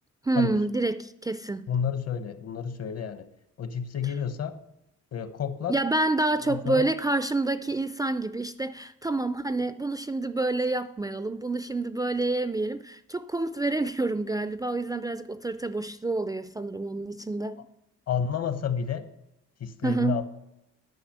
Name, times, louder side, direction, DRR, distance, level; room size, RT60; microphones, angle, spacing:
voice 1, 0.2-1.7 4.0-4.1 5.7-17.6 19.8-20.2, right 2 dB, 15° right, 0.4 m, -28 dB
voice 2, 1.7-3.3 3.6-4.6 5.1-5.7 6.4-6.9 18.1-19.1 19.6-20.2, left 7 dB, 55° left, 1.1 m, -30 dB
9.2 x 5.8 x 6.6 m
cardioid pair, 90°, 30 cm